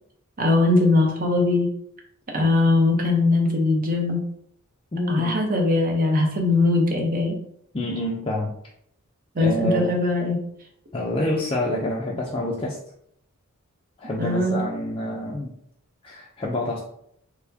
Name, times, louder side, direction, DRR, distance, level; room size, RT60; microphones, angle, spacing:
voice 1, 0.4-1.7 2.3-4.2 5.1-7.4 9.3-10.4 14.2-14.6, left 2 dB, 40° right, 1 dB, 0.7 m, -20 dB
voice 2, 4.9-5.4 7.7-8.5 9.4-10.0 10.9-12.8 14.0-15.5 16.0-16.8, left 1 dB, 25° left, -4 dB, 0.4 m, -27 dB
4.5 x 2.1 x 2.7 m, 0.70 s
head